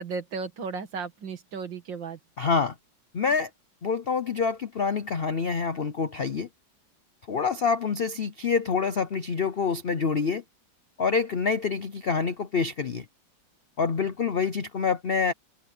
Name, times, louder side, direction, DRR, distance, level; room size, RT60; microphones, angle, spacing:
voice 1, 0.0-2.2, right 5 dB, 70° right, 2.6 m, -34 dB
voice 2, 2.4-2.7 3.1-3.5 3.8-6.5 7.3-10.4 11.0-13.0 13.8-15.3, left 5 dB, 75° left, 0.5 m, -26 dB
omnidirectional pair, 2.1 m